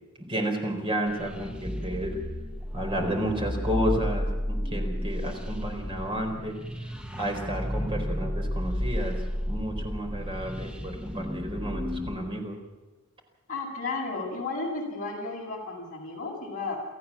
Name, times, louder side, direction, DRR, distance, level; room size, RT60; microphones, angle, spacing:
voice 1, 0.2-2.2 2.7-6.5 7.2-9.2 9.5-12.6, equal, 25° right, 3 dB, 4.5 m, -31 dB
sound 1, 1.1-12.2, equal, 5° right, 1.3 m, -32 dB
voice 2, 13.5-16.8, left 3 dB, 40° left, -2 dB, 8.0 m, -33 dB
29.0 x 14.0 x 7.4 m, 1.2 s
head